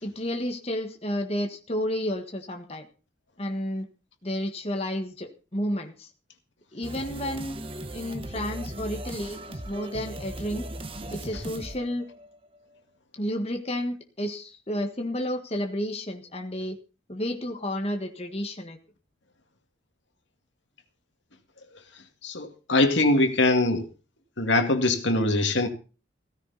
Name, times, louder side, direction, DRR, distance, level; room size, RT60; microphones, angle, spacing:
voice 1, 0.0-2.9 3.4-3.9 4.2-6.1 6.7-7.6 7.9-10.7 11.1-12.1 13.1-16.8 17.1-18.8, equal, 30° left, 1.6 m, -31 dB
sound 1, 6.8-12.6, right 1 dB, 30° right, 1.2 m, -38 dB
voice 2, 22.2-23.8 24.4-25.7, left 2 dB, 70° left, 2.2 m, -22 dB
16.5 x 15.0 x 4.1 m
head